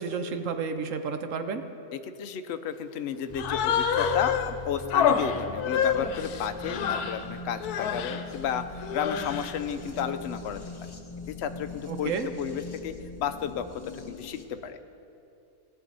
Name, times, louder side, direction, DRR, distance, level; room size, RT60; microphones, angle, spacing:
voice 1, 0.0-1.6 11.9-12.3, right 5 dB, 65° right, 8 dB, 1.0 m, -31 dB
voice 2, 2.2-8.6 8.9-10.6 11.3-12.1 12.4-14.8, left 8 dB, 60° left, 9 dB, 0.7 m, -33 dB
Human voice, 3.3-4.5 4.9-7.2 7.6-8.2 8.8-9.6, left 7 dB, 85° left, 1.2 m, -27 dB
sound 1, 3.3-14.4, left 3 dB, 30° left, 0.5 m, -41 dB
18.0 x 8.1 x 4.0 m, 2.8 s
omnidirectional pair, 1.6 m